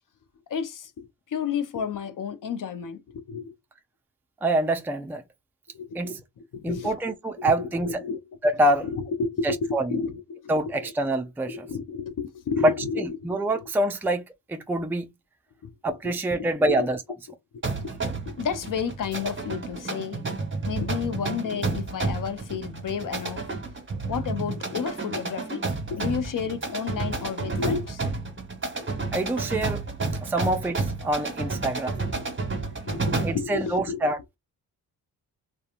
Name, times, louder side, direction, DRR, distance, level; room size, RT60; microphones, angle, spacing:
voice 1, 0.5-3.6 5.7-6.2 6.5-7.0 7.4-8.2 8.8-10.9 11.5-13.3 13.5-13.7 15.6-15.7 16.0-16.1 16.7-16.9 17.8-17.9 18.3-20.2 20.6-23.5 24.1-25.6 25.9-28.0 30.4-30.5 32.0-32.3 32.6-34.0, left 6 dB, 55° left, 0.7 m, -31 dB
voice 2, 4.4-5.2 5.9-6.2 6.6-8.0 8.4-8.9 9.4-10.0 10.5-11.7 12.6-12.7 13.0-14.2 14.5-15.1 15.8-17.0 29.1-29.8 30.2-32.0 33.2-34.4, right 1 dB, 5° right, 0.5 m, -25 dB
sound 1, 17.6-33.5, right 3 dB, 30° right, 1.3 m, -31 dB
2.8 x 2.3 x 2.4 m
supercardioid pair, 45°, 39 cm